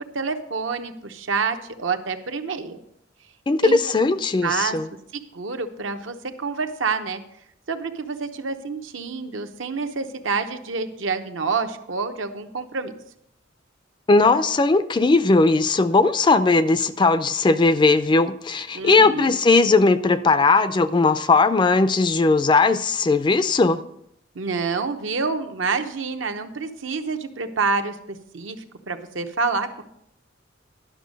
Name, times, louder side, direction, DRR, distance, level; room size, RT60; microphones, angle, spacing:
voice 1, 0.1-2.8 3.6-3.8 4.1-4.8 5.1-7.2 7.7-12.9 18.7-19.4 24.3-28.6 28.9-29.8, right 4 dB, 75° right, 7 dB, 0.8 m, -27 dB
voice 2, 3.5-4.9 14.1-23.8, left 3 dB, 25° left, 13 dB, 0.4 m, -18 dB
11.0 x 6.2 x 5.2 m, 0.75 s
head